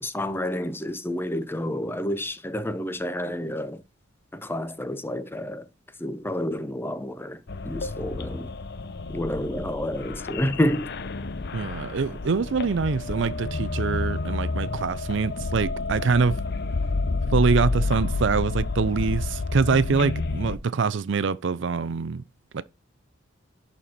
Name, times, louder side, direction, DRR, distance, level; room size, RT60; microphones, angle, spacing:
voice 1, 0.0-3.8 4.3-5.7 6.0-8.5 9.1-10.9, left 1 dB, 10° left, 0.8 m, -29 dB
sound 1, 7.5-20.6, left 3 dB, 55° left, 0.8 m, -30 dB
voice 2, 11.5-16.4 17.3-22.2 22.5-22.6, right 5 dB, 70° right, 0.5 m, -24 dB
11.0 x 4.3 x 4.3 m
head